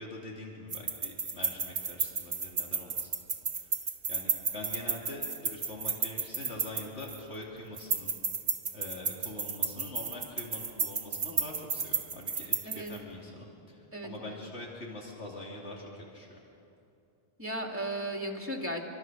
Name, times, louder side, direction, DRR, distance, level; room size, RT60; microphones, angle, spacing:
voice 1, 0.0-3.1 3.6-3.7 4.1-8.1 8.7-16.4, left 2 dB, 85° left, -2 dB, 3.1 m, -44 dB
sound 1, 0.7-7.3 7.8-13.0, right 5 dB, 70° right, 1.5 m, -33 dB
voice 2, 13.9-14.4 17.4-18.9, right 1 dB, 10° right, 1 dB, 2.7 m, -36 dB
26.5 x 24.5 x 6.3 m, 2.7 s
omnidirectional pair, 1.1 m